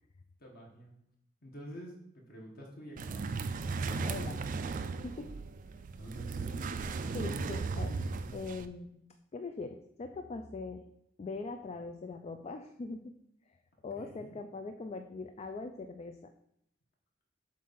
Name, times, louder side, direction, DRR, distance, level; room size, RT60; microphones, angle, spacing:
voice 1, 0.4-1.0 1.4-3.4 6.0-7.2 13.9-14.4, right 1 dB, 50° left, -1 dB, 1.3 m, -49 dB
sound 1, 3.0-8.7, right 4 dB, 45° right, 0.3 m, -36 dB
voice 2, 3.9-4.5 4.9-5.4 7.1-8.0 8.3-9.1 9.3-10.9 11.2-13.1 13.8-16.3, left 3 dB, 35° left, 6 dB, 0.3 m, -41 dB
7.4 x 2.6 x 5.5 m, 0.75 s
head